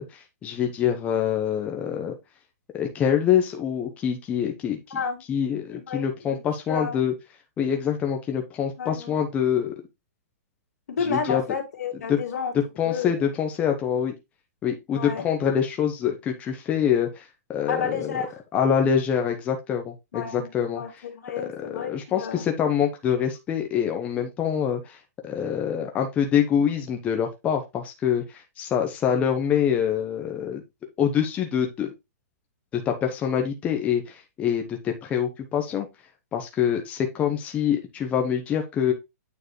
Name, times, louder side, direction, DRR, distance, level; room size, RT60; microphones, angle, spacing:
voice 1, 0.0-2.1 2.7-5.0 5.3-7.1 7.6-9.7 11.0-11.4 12.1-12.2 12.5-14.1 14.6-18.2 18.5-21.0 21.4-30.6 31.0-31.9 32.7-35.9 36.3-38.9, left 8 dB, 15° left, 0.8 m, -25 dB
voice 2, 4.9-5.2 5.7-6.4 6.7-7.0 8.8-9.2 10.9-12.5 12.8-13.1 14.9-15.3 17.7-18.4 20.1-20.5 20.7-20.9 21.2-22.4, left 6 dB, 75° left, 2.5 m, -31 dB
8.8 x 4.7 x 3.1 m
hypercardioid pair, 160°, 9 cm